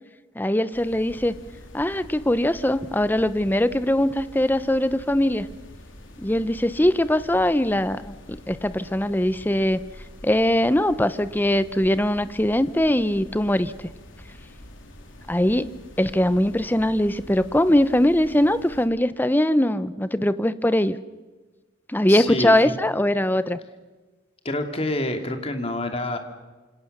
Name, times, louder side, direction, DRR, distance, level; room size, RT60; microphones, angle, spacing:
voice 1, 0.4-1.3 1.7-5.5 6.2-9.8 10.2-13.7 15.3-15.7 16.0-21.0 21.9-23.6, left 1 dB, 10° left, 14 dB, 0.8 m, -21 dB
sound 1, 0.7-18.9, left 1 dB, 80° left, 3.8 m, -45 dB
voice 2, 22.1-22.7 24.4-26.2, left 1 dB, 30° left, 5 dB, 2.7 m, -27 dB
28.0 x 26.5 x 6.8 m, 1.3 s
head